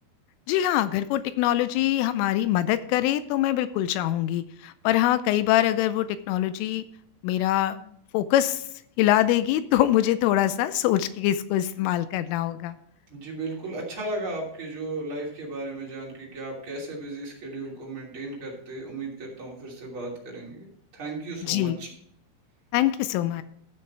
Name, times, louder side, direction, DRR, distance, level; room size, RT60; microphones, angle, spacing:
voice 1, 0.5-6.8 7.2-8.6 9.0-12.8 21.4-21.8 22.7-23.4, left 13 dB, 85° left, 13 dB, 3.0 m, -24 dB
voice 2, 13.1-20.7 20.9-21.9, right 2 dB, 30° right, -3 dB, 3.0 m, -35 dB
14.0 x 6.2 x 4.6 m, 0.69 s
omnidirectional pair, 5.9 m